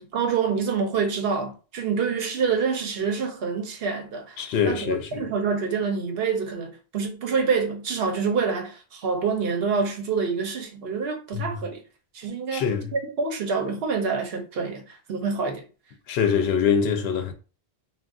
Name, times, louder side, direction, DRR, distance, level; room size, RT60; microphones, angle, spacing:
voice 1, 0.0-4.4 4.6-11.8 12.1-12.7 12.9-15.6, right 5 dB, 75° right, 0.9 m, -27 dB
voice 2, 4.4-5.3 11.3-11.6 12.5-12.9 16.1-17.3, left 7 dB, 75° left, 0.8 m, -24 dB
2.3 x 2.3 x 3.6 m
omnidirectional pair, 1.0 m